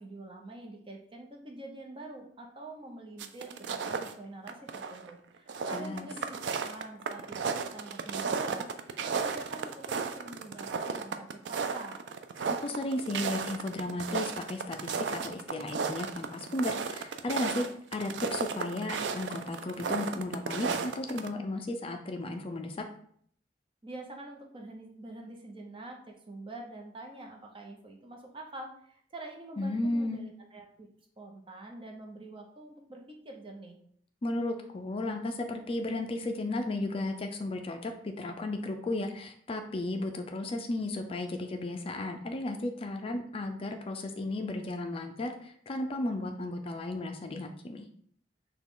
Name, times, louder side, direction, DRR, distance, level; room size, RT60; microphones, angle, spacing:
voice 1, 0.0-6.4 6.6-12.0 23.8-30.9 31.2-33.8, right 2 dB, 30° right, 1 dB, 0.8 m, -45 dB
sound 1, 3.2-4.1 4.5-5.1 5.4-21.3, right 5 dB, 85° right, 0.4 m, -34 dB
voice 2, 5.7-6.1 12.5-22.8 29.6-30.3 34.2-47.9, left 2 dB, 30° left, 5 dB, 0.4 m, -34 dB
6.0 x 2.3 x 3.7 m, 0.63 s
head